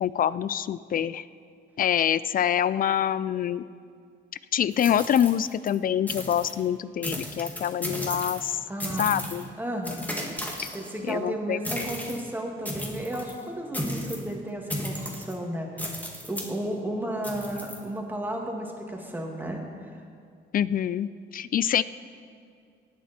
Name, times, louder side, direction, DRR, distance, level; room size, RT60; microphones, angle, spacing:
voice 1, 0.0-1.2 1.8-3.6 4.5-8.6 9.0-9.4 11.0-11.6 20.5-21.8, left 9 dB, 45° left, 17 dB, 0.4 m, -25 dB
sound 1, 4.7-5.7 6.1-6.6 7.0-8.5 8.8-9.4 9.8-11.1 11.6-12.2 12.6-13.3 13.7-14.3 14.7-15.3 15.8-16.5 17.2-17.8, equal, 10° left, 1.8 m, -34 dB
voice 2, 8.7-9.3 9.6-10.1 10.7-20.0, right 1 dB, 10° right, 0 dB, 2.2 m, -33 dB
18.0 x 9.4 x 4.4 m, 2.3 s
cardioid pair, 90°, 20 cm